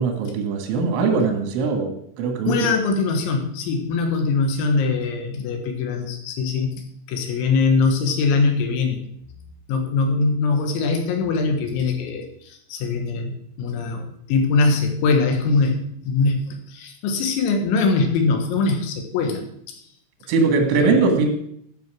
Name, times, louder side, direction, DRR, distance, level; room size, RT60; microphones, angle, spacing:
voice 1, 0.0-2.5 20.3-21.3, right 4 dB, 85° right, 4 dB, 4.1 m, -21 dB
voice 2, 2.5-9.0 9.7-19.4 19.7-19.8 20.7-21.2, left 4 dB, 75° left, 4 dB, 3.7 m, -22 dB
12.0 x 5.9 x 6.2 m, 0.71 s
omnidirectional pair, 5.5 m